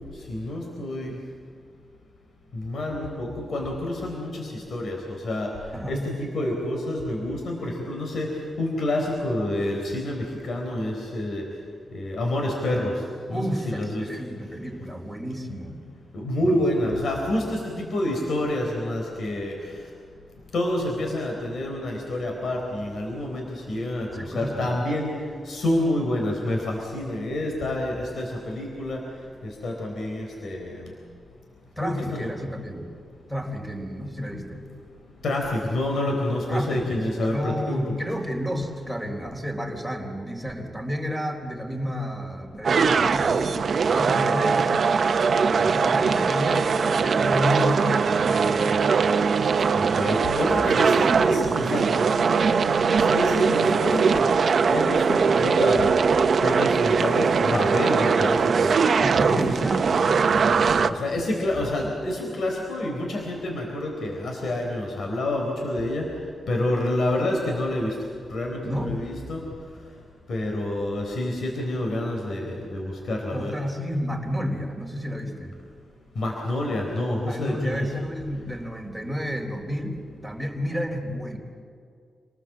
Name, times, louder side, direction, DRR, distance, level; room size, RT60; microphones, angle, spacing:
voice 1, 0.3-1.1 2.5-5.5 5.9-8.3 8.6-11.4 11.9-12.9 13.3-14.0 16.1-19.5 20.5-24.1 24.3-25.1 25.5-29.0 29.4-30.8 31.8-32.3 35.2-38.0 49.7-52.3 53.0-54.3 54.7-56.0 56.4-58.8 59.3-59.6 60.8-66.0 66.5-67.9 68.3-69.4 70.3-73.5 76.2-77.9, left 1 dB, 65° left, 1 dB, 4.1 m, -28 dB
voice 2, 5.7-6.0 13.3-15.8 16.4-16.6 24.1-24.7 31.8-32.9 33.3-34.6 36.5-43.6 43.9-44.8 45.5-49.0 59.0-60.9 68.6-69.0 73.3-75.6 77.2-81.4, equal, 5° left, 1 dB, 3.9 m, -31 dB
sound 1, 42.6-60.9, right 5 dB, 55° right, 0.9 m, -21 dB
27.5 x 19.5 x 7.6 m, 2.3 s
wide cardioid pair, 115°, 0 cm